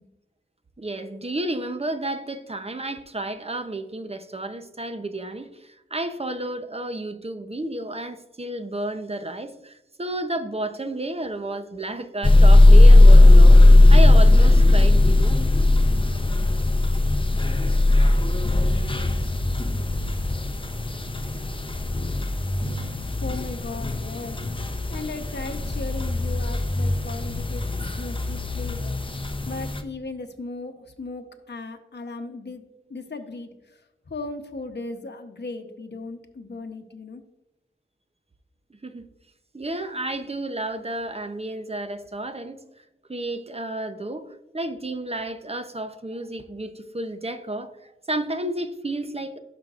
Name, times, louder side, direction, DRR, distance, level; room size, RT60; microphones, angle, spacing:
voice 1, 0.8-13.6 13.9-15.4 38.8-39.1 39.5-42.6 43.1-49.4, right 1 dB, 30° right, 0.7 m, -31 dB
sound 1, 12.2-29.8, left 2 dB, 25° left, 0.7 m, -17 dB
voice 2, 23.2-24.4 24.9-27.7 28.0-29.0 29.5-32.6 32.9-37.2, left 3 dB, 55° left, 0.9 m, -37 dB
12.5 x 5.2 x 2.5 m
wide cardioid pair, 55°, 21 cm